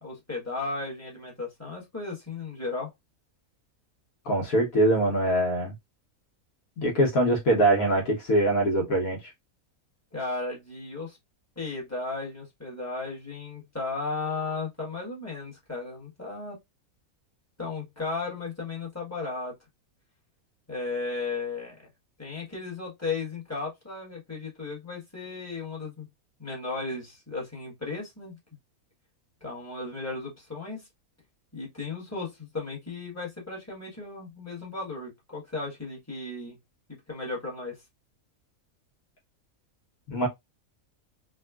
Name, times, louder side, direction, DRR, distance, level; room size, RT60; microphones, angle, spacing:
voice 1, 0.0-2.9 10.1-11.2 11.6-16.6 17.6-19.5 20.7-21.9 22.2-26.0 26.4-28.3 29.4-30.9 31.5-36.6 36.9-37.8, left 3 dB, 10° left, 1.1 m, -35 dB
voice 2, 4.3-5.7 6.8-9.3 40.1-40.3, right 1 dB, 75° left, 1.3 m, -23 dB
3.5 x 2.2 x 2.3 m
omnidirectional pair, 1.5 m